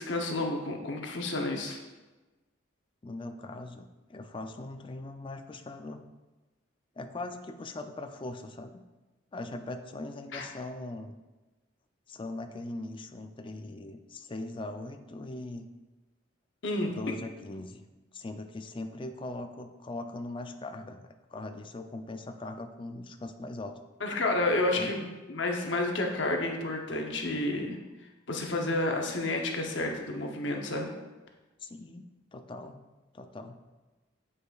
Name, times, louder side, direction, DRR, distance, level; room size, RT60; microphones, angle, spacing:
voice 1, 0.0-1.8 10.3-10.5 16.6-16.9 24.0-27.8 28.3-30.9, left 2 dB, 65° left, 2 dB, 0.8 m, -30 dB
voice 2, 3.0-6.0 7.0-8.8 9.3-11.2 12.1-15.7 16.9-17.8 18.1-23.8 24.8-24.9 31.6-32.8 33.1-33.6, left 2 dB, 25° left, 6 dB, 0.4 m, -40 dB
9.0 x 4.9 x 2.4 m, 1.2 s
head